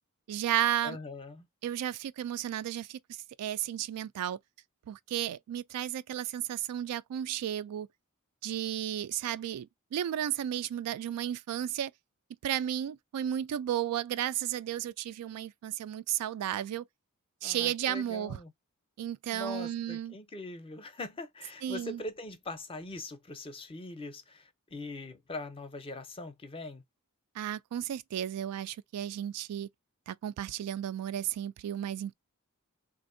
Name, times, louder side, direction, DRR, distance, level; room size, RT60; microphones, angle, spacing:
voice 1, 0.3-1.0 1.6-4.4 4.9-7.9 8.4-11.9 12.4-16.8 17.4-18.4 19.0-20.1 21.6-22.0 27.3-29.7 30.1-32.2, right 11 dB, 90° right, 0.3 m, -33 dB
voice 2, 0.8-1.5 17.4-18.5 19.3-26.8, left 2 dB, 25° left, 0.5 m, -42 dB
3.5 x 2.5 x 2.5 m
head